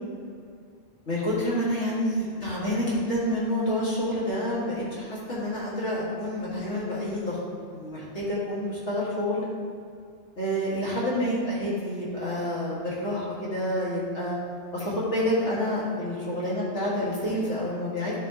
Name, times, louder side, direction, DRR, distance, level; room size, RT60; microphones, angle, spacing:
voice 1, 1.1-7.4 7.7-9.5 10.4-14.4 14.7-18.1, left 1 dB, 90° left, -8 dB, 2.2 m, -28 dB
11.0 x 4.5 x 3.0 m, 2.3 s
omnidirectional pair, 1.2 m